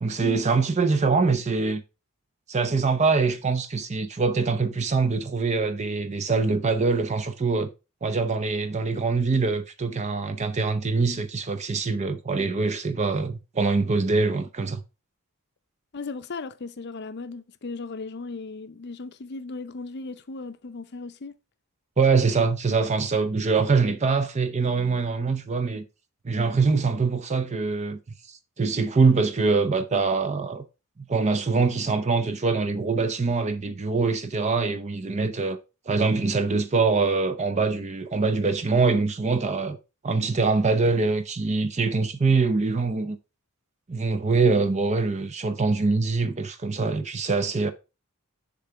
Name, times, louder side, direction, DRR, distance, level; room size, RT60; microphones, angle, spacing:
voice 1, 0.0-1.8 2.5-7.7 8.0-14.8 22.0-25.8 26.2-28.0 28.3-30.6 31.1-35.6 35.9-39.8 40.0-43.2 43.9-47.7, right 4 dB, 30° right, 0.5 m, -24 dB
voice 2, 15.9-21.3, left 3 dB, 50° left, 0.5 m, -36 dB
6.9 x 3.8 x 5.6 m
head